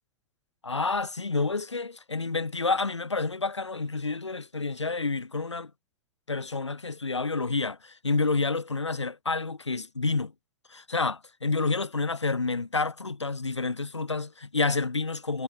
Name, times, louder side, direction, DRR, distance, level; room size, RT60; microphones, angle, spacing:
voice 1, 0.6-5.7 6.3-10.3 10.7-15.4, left 3 dB, 85° left, 0.6 m, -29 dB
figure-of-eight pair, 95°, 14 cm